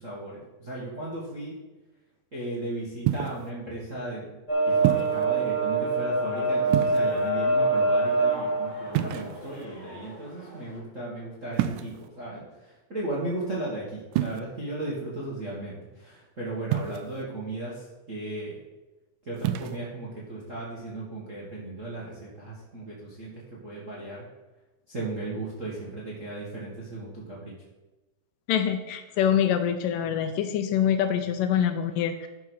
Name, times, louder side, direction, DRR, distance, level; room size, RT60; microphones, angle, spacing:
voice 1, 0.0-1.6 2.3-4.4 4.6-18.6 19.2-24.2 24.9-27.5, right 2 dB, 35° right, -5 dB, 1.2 m, -36 dB
sound 1, 3.1-3.5 4.8-5.3 6.7-7.3 8.9-9.7 11.5-12.1 14.1-14.4 16.7-17.2 19.4-19.8, right 12 dB, 80° right, 1.9 m, -28 dB
sound 2, 4.5-10.8, right 2 dB, 55° left, 0.5 m, -26 dB
voice 2, 28.5-32.3, left 9 dB, 80° left, 8 dB, 2.1 m, -25 dB
12.0 x 4.8 x 6.2 m, 1.1 s
omnidirectional pair, 4.1 m